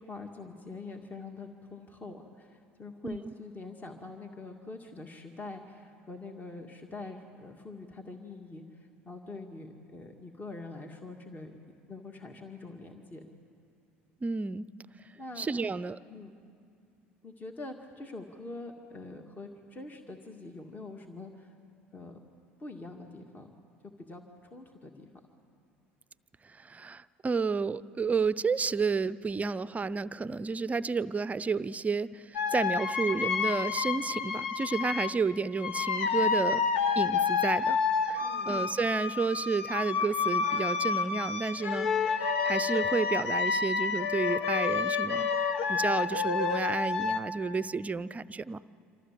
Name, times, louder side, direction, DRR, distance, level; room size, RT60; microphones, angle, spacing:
voice 1, 0.0-11.5 11.9-13.2 15.2-15.7 16.1-16.3 17.2-21.6 21.9-22.2 22.6-23.5 24.1-25.1 38.2-38.5, left 3 dB, 25° left, 4 dB, 2.1 m, -44 dB
voice 2, 14.2-14.7 15.4-16.0 26.4-36.6 37.0-45.3 45.7-48.6, right 4 dB, 20° right, 17 dB, 0.6 m, -31 dB
sound 1, 32.3-35.2 35.6-47.2, left 5 dB, 75° left, 1.2 m, -29 dB
27.0 x 26.0 x 7.6 m, 2.4 s
hypercardioid pair, 65°, 6 cm